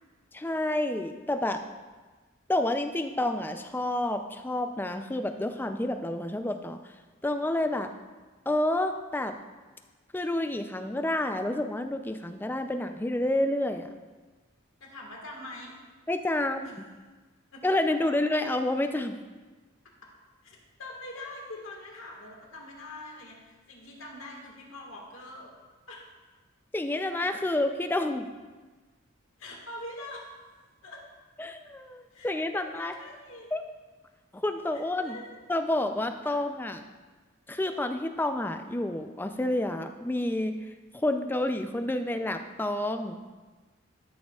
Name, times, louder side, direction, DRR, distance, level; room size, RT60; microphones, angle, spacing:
voice 1, 0.3-1.6 2.5-6.8 7.2-7.9 8.5-9.3 10.1-13.9 16.1-16.6 17.6-19.2 26.7-28.3 31.4-32.9 33.5-33.6 34.3-35.2 35.5-36.8 37.5-40.6 40.9-43.2, left 1 dB, 10° left, 7 dB, 0.3 m, -29 dB
voice 2, 14.8-15.7 16.6-16.7 17.5-17.7 20.4-25.6 25.9-26.0 29.4-30.2 30.8-31.0 32.1-33.5 34.7-35.5 36.2-36.4, left 2 dB, 80° left, -1 dB, 1.6 m, -44 dB
12.0 x 6.5 x 2.3 m, 1.3 s
head